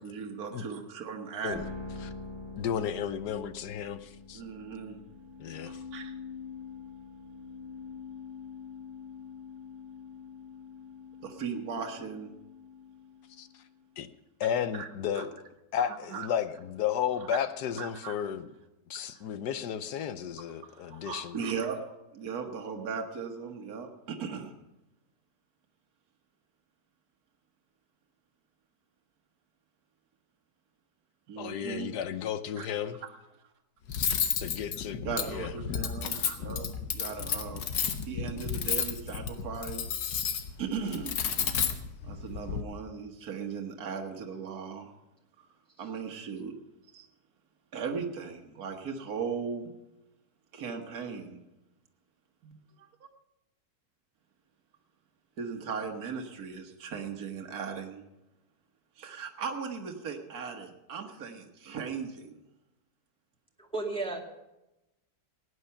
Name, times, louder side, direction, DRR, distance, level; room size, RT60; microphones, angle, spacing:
voice 1, 0.0-1.7 4.3-5.0 5.7-6.1 11.2-12.3 14.8-14.9 15.2-15.3 15.8-16.3 17.3-17.4 17.8-18.1 18.9-19.0 20.7-24.5 31.3-31.9 32.6-32.7 35.0-36.7 36.9-37.6 38.1-39.8 40.6-41.2 42.0-44.9 45.8-46.6 46.9-47.1 47.7-49.7 50.5-51.4 52.4-52.6 55.4-58.0 59.0-62.3, right 6 dB, 60° right, 2 dB, 1.8 m, -37 dB
sound 1, 1.5-13.8, left 4 dB, 15° right, 1.3 m, -45 dB
voice 2, 2.6-4.4 5.4-5.8 13.4-13.5 14.0-14.1 14.4-15.3 15.7-18.5 18.9-21.4 31.4-33.0 34.4-35.5, left 9 dB, 70° left, 12 dB, 1.3 m, -33 dB
Cutlery silverware, 33.9-42.6, left 7 dB, 90° left, 1.7 m, -32 dB
voice 3, 63.6-64.2, right 3 dB, 5° left, -1 dB, 2.0 m, -33 dB
17.5 x 9.7 x 5.7 m, 0.94 s
omnidirectional pair, 1.8 m